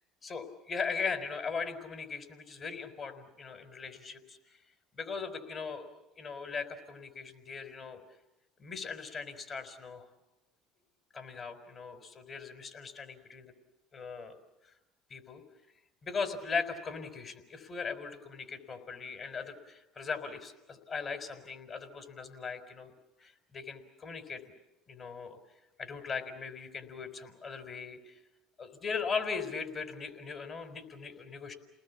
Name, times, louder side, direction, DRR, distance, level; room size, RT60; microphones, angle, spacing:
voice 1, 0.2-4.4 4.9-5.9 6.2-8.0 8.6-10.1 11.1-13.5 13.9-14.4 15.1-15.4 16.0-22.9 23.2-24.4 24.9-25.4 25.8-28.2 28.6-31.5, left 5 dB, 35° left, 7 dB, 4.4 m, -39 dB
30.0 x 19.5 x 8.4 m, 0.93 s
supercardioid pair, 95°, 0 cm